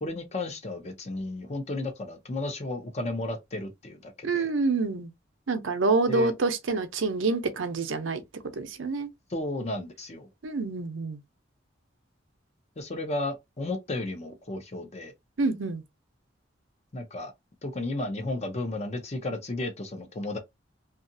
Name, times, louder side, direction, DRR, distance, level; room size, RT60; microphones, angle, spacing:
voice 1, 0.0-4.5 6.1-6.3 9.3-10.3 12.8-15.1 16.9-17.3 17.6-20.4, left 2 dB, 35° left, 0.7 m, -33 dB
voice 2, 4.2-5.1 5.5-8.2 8.6-9.1 10.4-11.2 15.4-15.8, right 3 dB, 85° right, 0.6 m, -27 dB
2.8 x 2.4 x 2.6 m
head